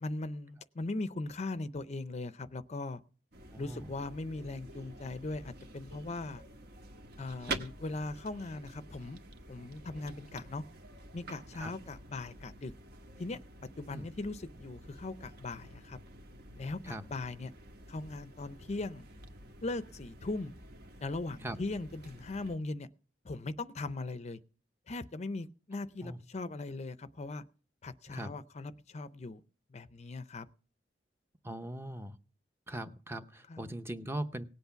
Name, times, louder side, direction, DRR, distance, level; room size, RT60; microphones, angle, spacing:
voice 1, 0.0-3.0 3.6-6.4 7.2-9.2 9.5-10.6 11.1-12.7 13.2-13.4 13.8-16.0 16.6-17.5 17.9-19.1 19.6-20.5 21.0-22.9 23.2-24.4 24.9-27.4 27.8-29.4 29.7-30.5 33.5-33.7, left 2 dB, 40° left, 14 dB, 0.6 m, -39 dB
sound 1, 3.3-22.6, right 2 dB, 60° right, 1.3 m, -48 dB
voice 2, 3.5-3.9 7.5-7.6 11.5-11.7 13.9-14.1 16.8-17.1 21.4-21.6 26.0-26.2 28.1-28.4 31.4-32.2 32.7-34.4, right 1 dB, 15° right, 8 dB, 0.7 m, -40 dB
18.0 x 8.1 x 5.8 m, 0.39 s
head